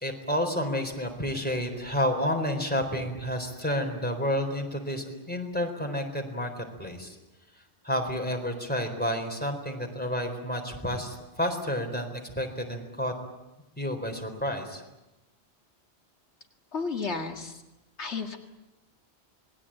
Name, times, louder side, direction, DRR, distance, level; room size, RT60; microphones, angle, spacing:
voice 1, 0.0-7.2 7.8-13.1 13.8-14.8, equal, 10° left, 3 dB, 4.1 m, -30 dB
voice 2, 16.7-17.6 18.0-18.4, left 4 dB, 75° left, 4 dB, 2.2 m, -32 dB
27.0 x 21.0 x 8.9 m, 0.99 s
omnidirectional pair, 1.2 m